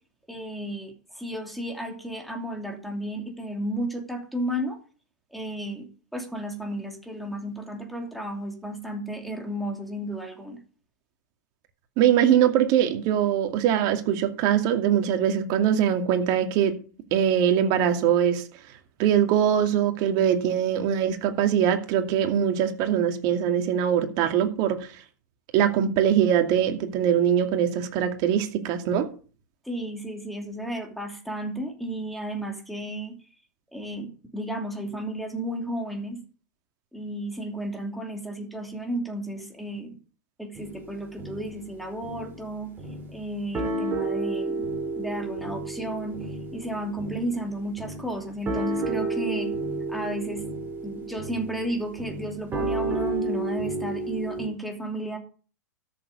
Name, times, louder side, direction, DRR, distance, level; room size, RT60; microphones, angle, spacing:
voice 1, 0.3-4.8 5.3-5.8 6.1-10.6 29.6-33.1 33.7-34.1 34.3-36.2 36.9-39.9 40.4-42.7 43.1-44.7 44.9-49.5 49.9-50.4 50.8-55.2, right 1 dB, ahead, 2.8 m, -33 dB
voice 2, 12.0-16.8 17.1-18.4 19.0-24.9 25.5-29.1, right 9 dB, 45° right, 2.3 m, -22 dB
sound 1, 40.6-41.7 42.0-42.4 42.8-43.2 43.5-54.5, right 2 dB, 20° right, 3.9 m, -31 dB
13.0 x 7.1 x 5.3 m
hypercardioid pair, 110°, 10 cm